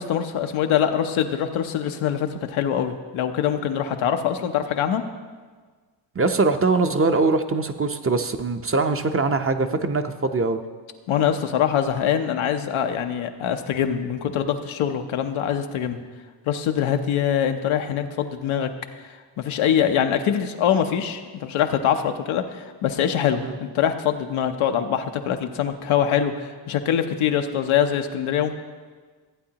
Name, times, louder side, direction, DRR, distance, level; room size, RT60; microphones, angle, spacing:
voice 1, 0.0-5.0 11.1-16.0 16.5-18.7 19.4-28.5, left 9 dB, 90° left, 6 dB, 0.7 m, -23 dB
voice 2, 6.1-10.6 23.4-23.6, right 3 dB, 30° right, 7 dB, 0.6 m, -22 dB
14.5 x 8.3 x 2.9 m, 1.5 s
cardioid pair, 55°, 47 cm